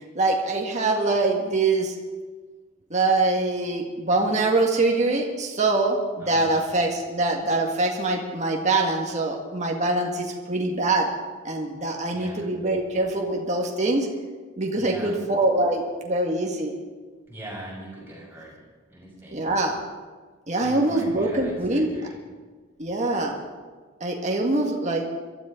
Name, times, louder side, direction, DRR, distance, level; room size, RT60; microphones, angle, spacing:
voice 1, 0.1-1.9 2.9-11.1 11.4-14.1 14.6-16.7 19.3-19.8 20.5-21.9 22.8-23.3 24.0-25.1, right 2 dB, 35° right, 0 dB, 1.8 m, -24 dB
voice 2, 6.2-6.6 12.1-12.5 14.8-15.2 17.3-18.5 18.9-19.6 20.6-22.2, right 1 dB, 10° right, -6 dB, 6.3 m, -40 dB
22.5 x 13.0 x 3.9 m, 1.4 s
head